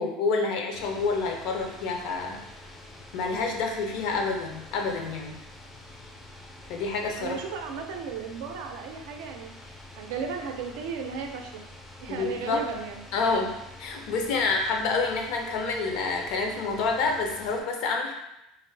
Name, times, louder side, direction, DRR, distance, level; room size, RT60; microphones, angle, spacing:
voice 1, 0.0-2.4 3.1-5.4 6.7-7.4 12.1-12.6 13.1-18.1, left 4 dB, 60° left, 2 dB, 0.5 m, -28 dB
sound 1, 0.7-17.6, left 1 dB, 10° left, 0.4 m, -47 dB
voice 2, 7.1-11.6 12.0-13.0, right 6 dB, 80° right, 4 dB, 0.4 m, -35 dB
2.5 x 2.5 x 3.2 m, 0.89 s
supercardioid pair, 135°, 0 cm